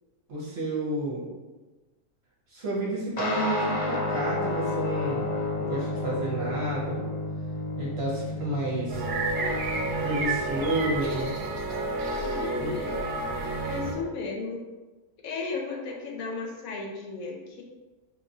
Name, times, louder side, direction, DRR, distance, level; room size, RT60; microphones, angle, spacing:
voice 1, 0.3-1.3 2.5-7.0 7.8-9.0 10.0-11.3 12.6-12.8, right 1 dB, 50° right, -5 dB, 0.9 m, -31 dB
sound 1, 3.2-11.0, left 2 dB, 90° left, 0.3 m, -31 dB
sound 2, 8.9-13.9, right 2 dB, 85° right, 1.3 m, -30 dB
voice 2, 12.1-13.2 13.6-14.6 15.2-17.6, left 4 dB, 70° left, 0 dB, 1.0 m, -35 dB
4.6 x 2.9 x 2.7 m, 1.2 s
omnidirectional pair, 1.6 m